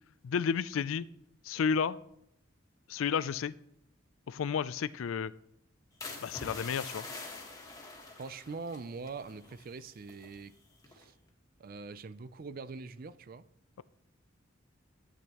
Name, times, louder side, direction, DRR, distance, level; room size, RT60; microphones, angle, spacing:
voice 1, 0.2-1.1 1.4-2.0 2.9-3.5 4.3-5.3 6.2-7.1, left 6 dB, 85° left, 0.4 m, -31 dB
sound 1, 6.0-10.4 10.8-11.2, left 3 dB, 15° left, 1.5 m, -45 dB
voice 2, 8.2-10.5 10.9-11.1 11.6-13.5, right 4 dB, 45° right, 0.4 m, -43 dB
12.5 x 8.2 x 3.0 m
head